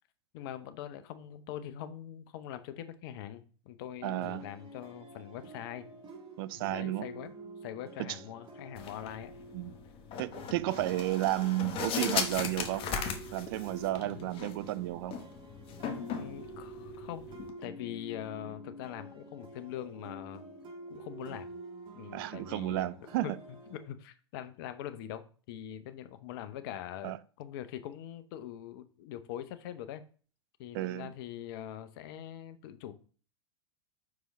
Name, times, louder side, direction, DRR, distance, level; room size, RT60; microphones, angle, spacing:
voice 1, 0.3-5.9 6.5-7.3 7.6-9.3 14.0-14.3 16.1-17.3 17.6-20.4 20.9-21.5 21.9-22.9 23.2-23.3 23.7-30.0 30.6-32.9, left 11 dB, 55° left, 0.7 m, -43 dB
sound 1, 4.0-23.8, right 2 dB, 35° right, 1.9 m, -48 dB
voice 2, 4.0-4.4 6.4-7.1 8.0-8.1 9.5-9.7 10.2-12.8 13.3-15.2 22.1-23.4 27.0-27.2 30.7-31.1, right 17 dB, 55° right, 0.4 m, -32 dB
sound 2, 8.8-17.5, left 6 dB, 40° left, 1.1 m, -38 dB
5.2 x 4.8 x 4.1 m
figure-of-eight pair, 95°, 15 cm